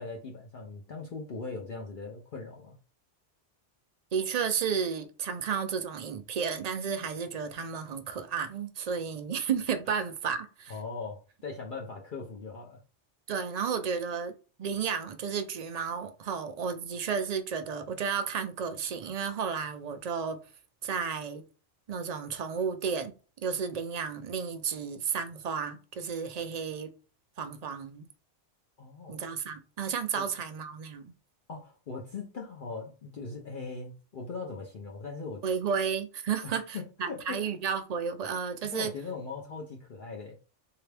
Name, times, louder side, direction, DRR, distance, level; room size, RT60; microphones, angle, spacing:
voice 1, 0.0-2.8 10.7-12.8 28.8-29.2 30.2-30.3 31.5-35.4 36.4-37.5 38.7-40.3, left 4 dB, 50° left, 0.7 m, -40 dB
voice 2, 4.1-10.7 13.3-14.3 14.6-20.4 20.8-21.4 21.9-23.1 23.4-26.9 27.4-28.1 29.1-31.1 35.4-38.9, right 6 dB, 55° right, 0.4 m, -32 dB
3.4 x 2.8 x 3.3 m
omnidirectional pair, 1.2 m